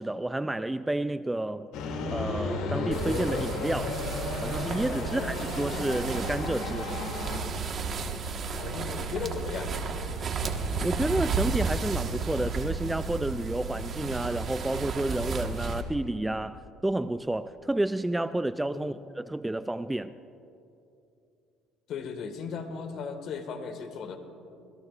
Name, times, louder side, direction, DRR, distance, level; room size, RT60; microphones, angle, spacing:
voice 1, 0.0-1.7 2.1-4.0 4.4-6.9 10.8-20.1, right 1 dB, 5° right, 0.3 m, -30 dB
sound 1, 1.7-7.4, left 3 dB, 75° left, 2.5 m, -33 dB
sound 2, 2.9-15.8, right 4 dB, 40° right, 1.4 m, -33 dB
voice 2, 8.6-9.7 18.7-19.0 21.9-24.2, left 6 dB, 55° left, 1.6 m, -36 dB
26.5 x 21.0 x 2.5 m
cardioid pair, 130°, 0 cm